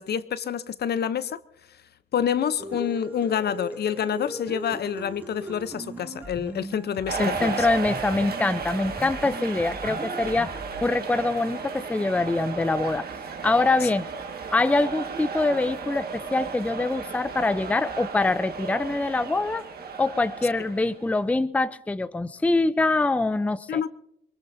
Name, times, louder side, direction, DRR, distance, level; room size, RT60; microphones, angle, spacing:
voice 1, 0.0-1.4 2.1-7.7 13.8-13.9 23.7-23.9, left 8 dB, 55° left, 0.7 m, -27 dB
sound 1, 2.6-10.9, right 1 dB, 10° right, 2.7 m, -38 dB
sound 2, 7.1-21.2, right 5 dB, 50° right, 1.7 m, -34 dB
voice 2, 7.2-13.1 13.4-14.1 14.5-19.6 20.0-23.8, left 2 dB, 5° left, 0.5 m, -24 dB
24.0 x 22.0 x 2.7 m
cardioid pair, 90°, 20 cm